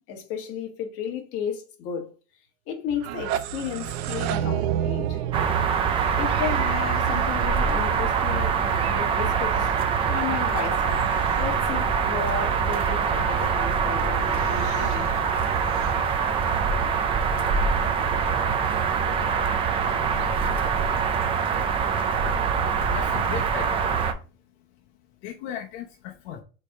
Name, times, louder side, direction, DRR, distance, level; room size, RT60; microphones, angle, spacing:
voice 1, 0.1-2.1 2.7-5.2 6.0-9.7 10.1-15.2 15.7-15.9, left 7 dB, 40° left, 1.7 m, -33 dB
sound 1, 2.9-7.8, right 10 dB, 65° right, 0.7 m, -30 dB
sound 2, 5.3-24.1, right 6 dB, 15° right, 0.4 m, -24 dB
voice 2, 22.8-23.8 25.2-26.4, left 9 dB, 70° left, 1.1 m, -37 dB
5.2 x 4.6 x 4.9 m
cardioid pair, 170°, 34 cm